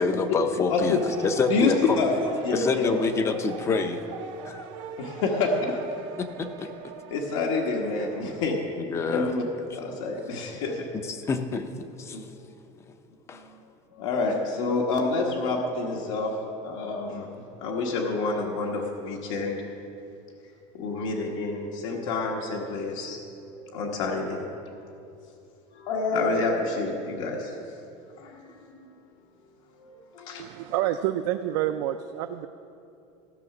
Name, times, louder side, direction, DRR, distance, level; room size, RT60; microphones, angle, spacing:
voice 1, 0.0-1.8 2.5-4.0 4.5-4.6 6.2-6.7 8.9-9.3 11.1-12.2 13.3-13.4, left 4 dB, 15° left, 9 dB, 0.5 m, -27 dB
voice 2, 0.7-1.0 1.5-3.0 5.0-5.8 7.1-8.6 9.1-10.9 12.1-12.2 13.3-13.6 13.9-16.3 16.6-17.3 17.6-19.6 20.7-23.2 23.6-24.4 25.7-27.6 28.2-28.8 29.8-30.4, left 3 dB, 80° left, -1 dB, 1.4 m, -28 dB
sound 1, 0.8-8.5, right 6 dB, 80° right, 1.1 m, -42 dB
voice 3, 30.4-32.5, right 12 dB, 65° right, 7 dB, 0.4 m, -28 dB
15.0 x 6.5 x 6.0 m, 2.6 s
cardioid pair, 175°, 16 cm